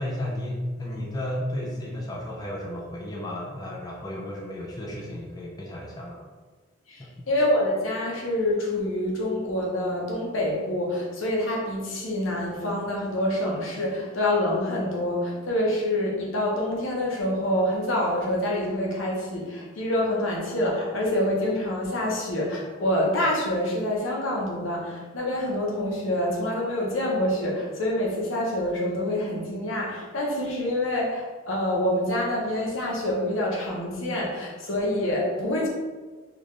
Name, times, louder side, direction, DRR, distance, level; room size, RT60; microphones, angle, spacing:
voice 1, 0.0-6.2 7.0-7.1, left 1 dB, 20° left, -3 dB, 0.5 m, -33 dB
voice 2, 6.9-35.7, left 1 dB, 85° left, -2 dB, 0.9 m, -26 dB
3.8 x 2.4 x 3.2 m, 1.4 s
head